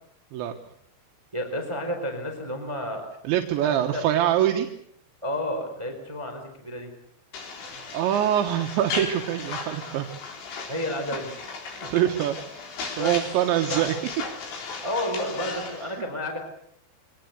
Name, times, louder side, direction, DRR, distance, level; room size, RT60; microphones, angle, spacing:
voice 1, 1.3-3.0 3.6-4.0 5.2-6.9 10.6-11.3 12.9-13.1 13.7-13.9 14.8-16.4, left 1 dB, 5° right, 4 dB, 3.5 m, -31 dB
voice 2, 3.3-4.7 7.7-10.1 11.8-12.4 13.0-14.0 16.0-16.1, right 11 dB, 80° right, 4 dB, 3.6 m, -24 dB
sound 1, 7.3-15.8, left 4 dB, 75° left, 6.1 m, -36 dB
25.0 x 19.0 x 8.2 m, 0.70 s
omnidirectional pair, 5.2 m